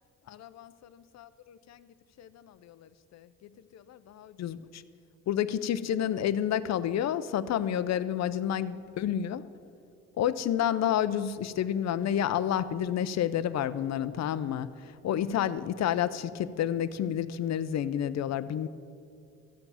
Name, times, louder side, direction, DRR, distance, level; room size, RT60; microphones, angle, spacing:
voice 1, 0.3-0.7 1.7-1.9 2.2-3.3 3.7-4.8 5.3-9.4 10.2-14.7 15.0-18.7, left 10 dB, 60° left, 14 dB, 0.6 m, -30 dB
14.0 x 7.0 x 7.1 m, 2.4 s
cardioid pair, 90°, 30 cm